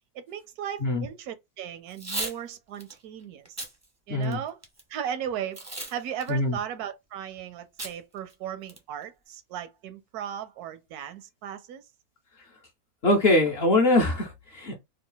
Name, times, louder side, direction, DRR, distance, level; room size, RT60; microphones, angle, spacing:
voice 1, 0.1-3.5 4.1-4.6 4.9-5.6 5.9-11.8, right 9 dB, 85° right, 1.1 m, -36 dB
Packing tape duct tape / Tearing, 1.9-2.4 2.8-2.9 3.4-3.7 4.2-4.8 5.5-5.9 6.2-6.3 7.8-7.9 8.3-8.4 8.7-9.0, right 2 dB, 20° right, 0.4 m, -34 dB
voice 2, 13.0-14.8, left 2 dB, 55° left, 0.7 m, -23 dB
3.2 x 2.2 x 3.8 m
omnidirectional pair, 1.6 m